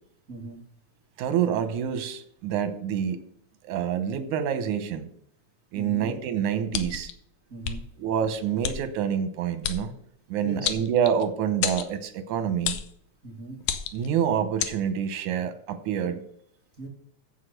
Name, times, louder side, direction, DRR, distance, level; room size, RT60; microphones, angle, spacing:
voice 1, 0.3-0.6 5.7-6.1 7.5-7.8 10.4-10.8 13.2-13.6 16.8-16.9, right 2 dB, 35° right, 0 dB, 1.4 m, -39 dB
voice 2, 1.2-3.2 3.7-5.1 5.7-7.1 8.0-9.9 10.3-12.8 13.9-16.2, right 8 dB, 85° right, 10 dB, 2.5 m, -27 dB
sound 1, 6.7-7.1 7.6-7.8 8.6-8.8 9.6-9.8 10.6-11.2 11.6-11.9 12.6-12.9 13.6-14.1 14.6-14.8, left 9 dB, 75° left, 2.1 m, -29 dB
8.1 x 7.8 x 6.5 m, 0.69 s
omnidirectional pair, 3.4 m